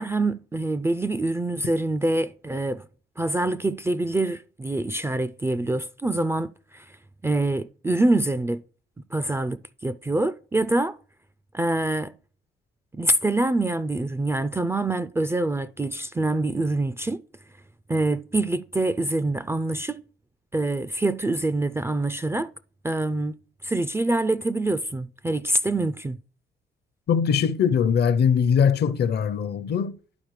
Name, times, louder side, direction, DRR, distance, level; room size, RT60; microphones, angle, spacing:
voice 1, 0.0-2.8 3.2-6.9 7.2-8.6 9.1-11.0 11.5-12.1 12.9-17.2 17.9-20.0 20.5-22.5 22.8-23.3 23.6-26.2, right 2 dB, 15° right, 0.3 m, -25 dB
voice 2, 27.1-29.9, left 7 dB, 55° left, 0.6 m, -21 dB
11.5 x 4.4 x 3.1 m
cardioid pair, 90°, 20 cm